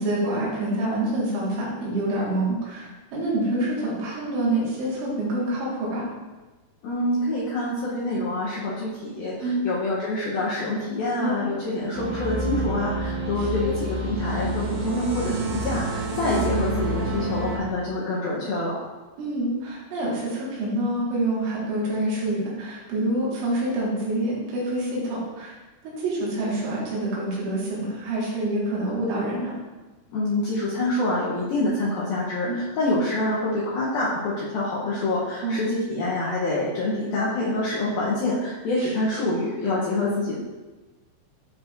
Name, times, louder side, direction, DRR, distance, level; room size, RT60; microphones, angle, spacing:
voice 1, 0.0-6.1 9.4-9.7 11.2-11.5 13.4-13.8 19.2-25.5 25.8-29.5 32.4-32.7 35.4-35.7 38.8-38.9, right 1 dB, 90° right, -6 dB, 4.2 m, -27 dB
voice 2, 6.8-18.8 30.1-40.4, left 2 dB, 80° left, -7 dB, 2.1 m, -26 dB
sound 1, 11.9-17.6, right 2 dB, 75° right, 2.8 m, -28 dB
10.0 x 4.4 x 2.6 m, 1.2 s
omnidirectional pair, 5.5 m